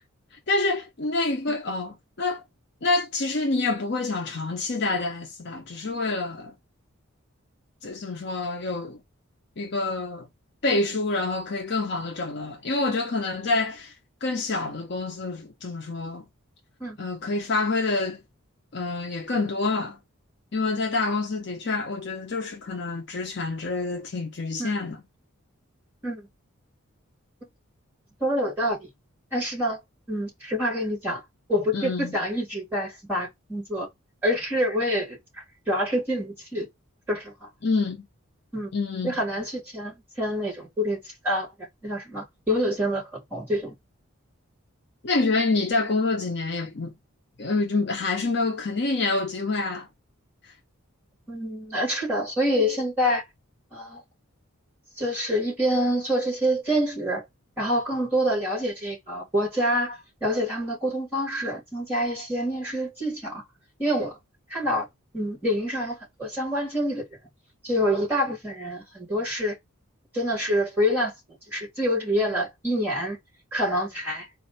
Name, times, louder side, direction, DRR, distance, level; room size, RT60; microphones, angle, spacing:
voice 1, 0.5-2.4 2.8-6.5 7.8-9.0 9.6-10.3 10.6-13.9 14.2-16.2 17.0-18.2 18.7-20.0 20.5-25.0 31.7-32.1 37.6-38.1 38.7-39.1 45.0-46.9 47.4-49.9, left 3 dB, 50° left, 0.6 m, -27 dB
voice 2, 28.2-28.9 29.3-29.8 30.1-31.2 31.5-33.9 34.2-35.2 35.7-36.7 37.1-37.5 38.5-38.7 39.0-41.5 41.8-43.7 51.3-53.2 53.7-54.0 55.0-57.2 57.6-63.4 63.8-64.2 64.5-64.9 65.1-67.0 67.6-69.6 70.1-71.1 71.5-73.2 73.5-74.3, equal, 10° right, 2.9 m, -26 dB
4.2 x 2.4 x 4.1 m
head